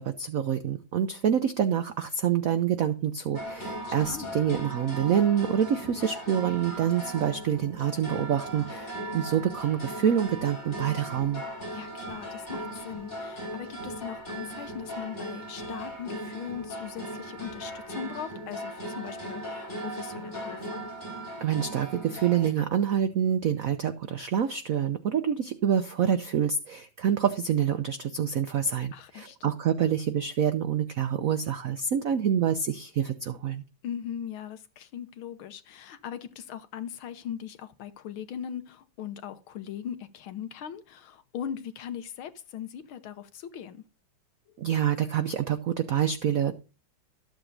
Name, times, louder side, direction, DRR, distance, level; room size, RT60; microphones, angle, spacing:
voice 1, 0.0-11.4 21.4-33.6 44.6-46.5, right 9 dB, 90° right, 0.7 m, -27 dB
sound 1, 3.3-22.5, right 1 dB, 30° left, 5.5 m, -38 dB
voice 2, 11.7-20.8 28.9-29.4 33.8-43.8, left 9 dB, 75° left, 1.7 m, -39 dB
14.0 x 7.9 x 2.6 m
omnidirectional pair, 2.4 m